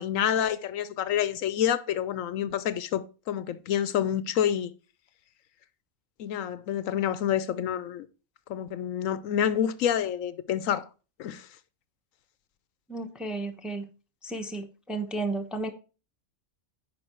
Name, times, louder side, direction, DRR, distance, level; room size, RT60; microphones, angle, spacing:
voice 1, 0.0-4.7 6.2-8.1 8.5-10.9 11.2-11.5, left 9 dB, 75° left, 1.0 m, -28 dB
voice 2, 12.9-13.9 14.2-15.7, right 2 dB, ahead, 0.8 m, -33 dB
9.6 x 5.2 x 4.4 m
omnidirectional pair, 1.4 m